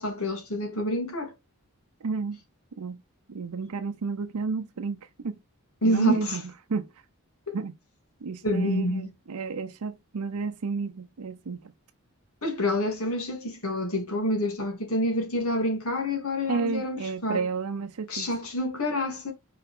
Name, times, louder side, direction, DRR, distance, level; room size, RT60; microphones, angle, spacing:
voice 1, 0.0-1.3 5.8-6.4 7.5-7.6 8.4-9.1 12.4-17.4 18.1-19.3, left 1 dB, 75° left, 2.9 m, -27 dB
voice 2, 2.0-2.4 2.8-3.0 3.3-5.4 5.8-6.9 7.5-7.8 8.2-11.7 16.5-18.3, right 4 dB, 85° right, 0.6 m, -31 dB
5.7 x 4.8 x 3.6 m
head